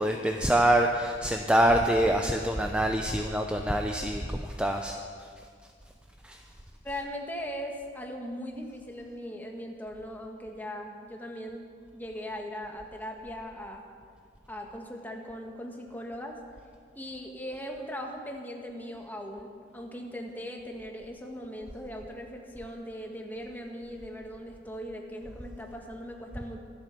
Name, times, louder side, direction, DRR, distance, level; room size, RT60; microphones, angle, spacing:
voice 1, 0.0-5.3 6.2-6.4, right 1 dB, 5° right, 3 dB, 0.6 m, -25 dB
voice 2, 6.8-11.6 11.9-13.8 14.5-16.4 16.9-26.6, equal, 10° left, 1 dB, 1.6 m, -39 dB
24.5 x 8.6 x 6.1 m, 2.1 s
head